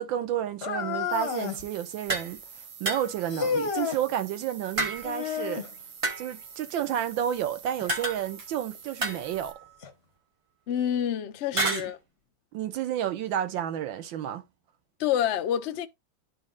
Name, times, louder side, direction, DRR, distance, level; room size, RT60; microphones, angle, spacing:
voice 1, 0.0-2.4 2.8-5.7 6.2-9.6 11.5-11.9 12.5-14.4, right 10 dB, 85° right, 1.5 m, -31 dB
sound 1, 0.6-1.6 3.3-4.0 5.0-5.7 7.8-7.9 8.7-8.8 9.8-9.9, left 6 dB, 45° left, 0.9 m, -30 dB
sound 2, 1.1-9.5, right 7 dB, 65° right, 1.7 m, -47 dB
sound 3, 2.1-2.3 2.9-3.3 4.8-5.3 6.0-6.5 7.9-8.5 9.0-9.8 11.6-11.9, right 2 dB, 35° right, 0.5 m, -31 dB
voice 2, 10.7-12.0 15.0-15.9, left 10 dB, 80° left, 0.6 m, -27 dB
12.0 x 4.3 x 2.4 m
omnidirectional pair, 2.1 m